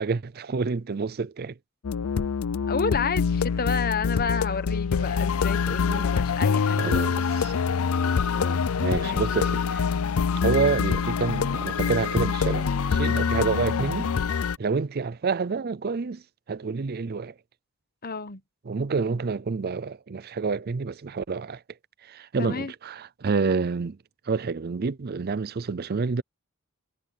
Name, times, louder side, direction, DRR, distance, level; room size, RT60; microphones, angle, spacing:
voice 1, 0.0-1.6 5.7-6.1 6.8-7.5 8.8-9.9 10.4-14.1 14.6-16.2 16.5-17.3 18.7-21.6 22.0-24.0 24.3-26.2, right 4 dB, 45° right, 0.5 m, -28 dB
sound 1, 1.8-14.6, left 6 dB, 80° left, 0.5 m, -25 dB
voice 2, 2.7-7.0 8.3-8.6 8.9-9.2 10.3-10.6 18.0-18.4 22.4-22.7, left 4 dB, 45° left, 1.0 m, -31 dB
head